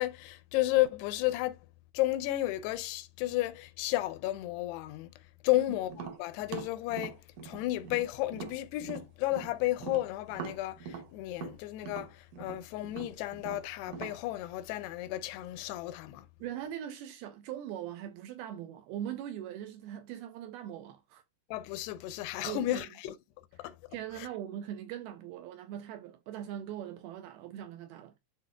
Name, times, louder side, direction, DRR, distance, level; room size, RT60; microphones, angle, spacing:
voice 1, 0.0-1.6 1.9-5.1 5.4-7.2 7.4-16.3 21.5-23.1 23.6-23.8 24.2-24.3, left 16 dB, 80° left, 2.5 m, -32 dB
Tap, 5.9-9.5 9.8-14.2, right 6 dB, 65° right, 2.2 m, -42 dB
voice 2, 16.4-21.2 22.5-22.9 23.6-28.1, right 11 dB, 80° right, 2.2 m, -41 dB
11.5 x 3.9 x 2.2 m
omnidirectional pair, 4.9 m